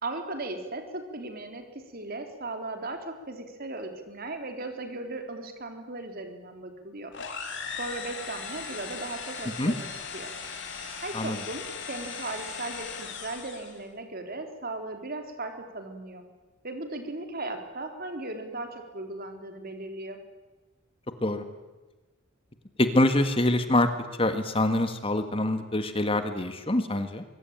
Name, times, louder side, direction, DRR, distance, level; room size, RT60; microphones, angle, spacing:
voice 1, 0.0-7.1 7.8-9.9 10.1-10.3 11.0-16.2 16.6-20.2, right 2 dB, 45° right, 5 dB, 3.9 m, -37 dB
sound 1, 7.1-13.8, left 6 dB, 60° left, 3.7 m, -38 dB
voice 2, 22.8-23.9 24.2-27.2, left 1 dB, 25° left, 8 dB, 1.7 m, -25 dB
24.0 x 23.5 x 9.1 m, 1.1 s
head